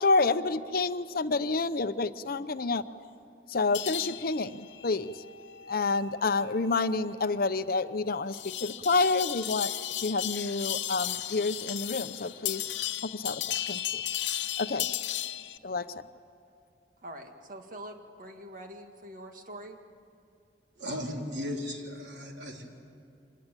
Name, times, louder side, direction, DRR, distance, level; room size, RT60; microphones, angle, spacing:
voice 1, 0.0-2.8 3.5-5.1 5.7-9.7 10.0-12.6 13.1-13.8 14.6-14.9 15.6-15.8, left 3 dB, 55° left, 11 dB, 0.7 m, -28 dB
sound 1, 3.7-15.6, left 12 dB, 85° left, 0.9 m, -36 dB
voice 2, 17.0-19.8, right 1 dB, 50° right, 4 dB, 2.0 m, -44 dB
voice 3, 20.8-22.6, left 1 dB, 75° right, 0 dB, 3.7 m, -36 dB
26.0 x 20.0 x 9.1 m, 2.6 s
head